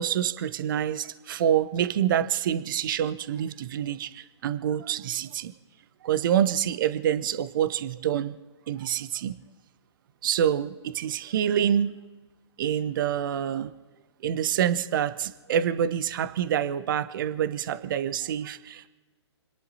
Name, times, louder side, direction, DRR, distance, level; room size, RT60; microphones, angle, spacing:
voice 1, 0.0-5.5 6.0-8.4 8.7-9.4 10.2-12.0 12.6-13.7 14.2-18.9, right 9 dB, 45° right, 13 dB, 0.9 m, -27 dB
29.5 x 11.0 x 4.1 m, 1.2 s
figure-of-eight pair, 125°, 15 cm